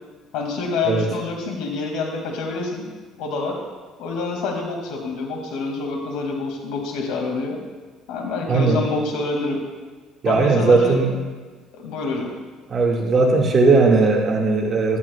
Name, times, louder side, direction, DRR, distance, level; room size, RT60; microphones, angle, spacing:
voice 1, 0.3-2.9 3.2-3.6 4.0-7.6 8.1-9.6 10.2-11.0 11.7-12.3, left 3 dB, 80° left, 1 dB, 2.2 m, -27 dB
voice 2, 8.5-8.8 10.2-11.1 12.7-15.0, right 3 dB, 40° right, 0 dB, 1.9 m, -17 dB
13.5 x 11.5 x 2.3 m, 1.3 s
cardioid pair, 110°, 0 cm